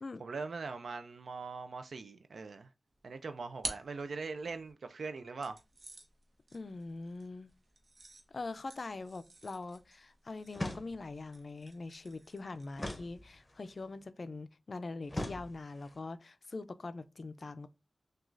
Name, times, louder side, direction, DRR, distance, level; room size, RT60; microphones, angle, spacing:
voice 1, 0.2-2.7 3.0-5.6, right 4 dB, 90° right, 0.3 m, -41 dB
sound 1, 2.9-4.7 5.4-13.0, right 2 dB, 60° right, 0.9 m, -50 dB
voice 2, 6.5-7.5 8.3-17.7, left 3 dB, 55° left, 0.3 m, -43 dB
sound 2, 10.5-11.3 12.8-13.7 15.1-16.0, left 1 dB, 25° left, 0.6 m, -41 dB
6.1 x 2.3 x 2.5 m
wide cardioid pair, 85°, 0 cm